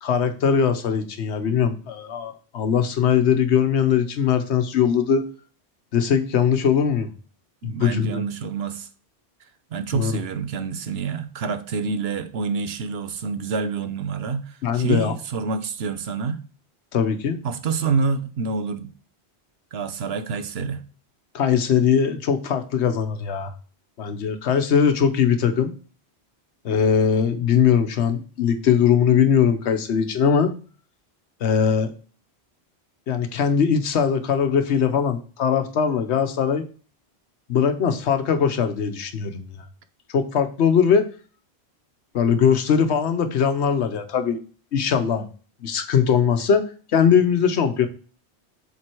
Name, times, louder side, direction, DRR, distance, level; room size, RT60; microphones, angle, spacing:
voice 1, 0.0-5.3 5.9-7.1 7.6-8.2 9.9-10.1 14.6-15.1 16.9-17.4 21.3-23.5 24.0-25.7 26.6-30.5 31.4-31.9 33.1-36.6 37.5-39.4 40.1-41.1 42.1-44.4 44.7-45.3 45.6-47.9, left 7 dB, 90° left, 1.1 m, -20 dB
voice 2, 7.6-8.9 9.7-16.4 17.4-18.9 19.7-20.8, right 5 dB, 70° right, 1.0 m, -27 dB
7.6 x 3.8 x 4.4 m
omnidirectional pair, 1.1 m